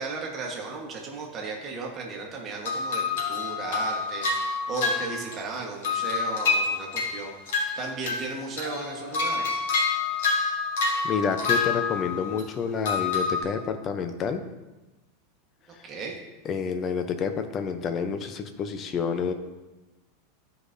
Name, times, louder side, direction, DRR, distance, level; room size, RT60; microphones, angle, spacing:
voice 1, 0.0-9.5 15.8-16.2, right 4 dB, 25° right, -1 dB, 1.3 m, -35 dB
sound 1, 2.7-5.5 5.8-8.3 8.6-12.4 12.9-13.4, left 4 dB, 85° left, 2.1 m, -27 dB
voice 2, 11.0-14.4 15.7-15.8 16.4-19.3, left 6 dB, 25° left, 8 dB, 0.5 m, -29 dB
13.0 x 4.9 x 2.6 m, 1.1 s
supercardioid pair, 160°, 0 cm